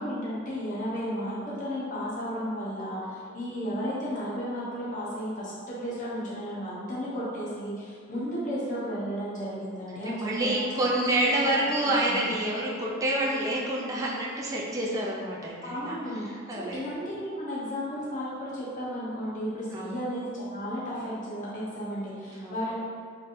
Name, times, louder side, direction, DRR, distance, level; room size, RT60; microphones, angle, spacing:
voice 1, 0.0-11.0 11.3-11.4 11.8-12.3 15.6-22.7, equal, 40° left, -8 dB, 1.0 m, -34 dB
voice 2, 10.1-16.0 16.5-16.8 19.7-19.9 22.3-22.6, right 1 dB, 15° right, -4 dB, 0.4 m, -28 dB
4.1 x 3.3 x 2.6 m, 2.1 s
head